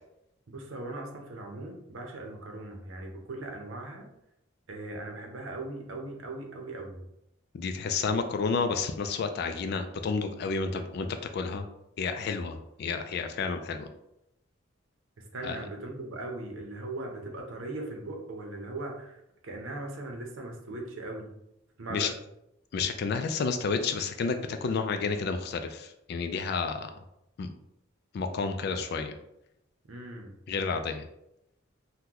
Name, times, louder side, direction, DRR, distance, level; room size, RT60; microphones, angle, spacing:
voice 1, 0.5-4.1 4.7-7.0 15.3-21.3 21.8-22.1 29.9-30.3, right 2 dB, 85° right, 2 dB, 0.7 m, -39 dB
voice 2, 7.5-11.1 11.3-11.7 12.0-13.9 15.4-15.6 21.9-22.1 22.7-26.9 27.4-27.5 28.1-29.2 30.5-31.0, left 4 dB, 55° left, 7 dB, 0.3 m, -30 dB
2.9 x 2.1 x 3.7 m, 0.83 s
head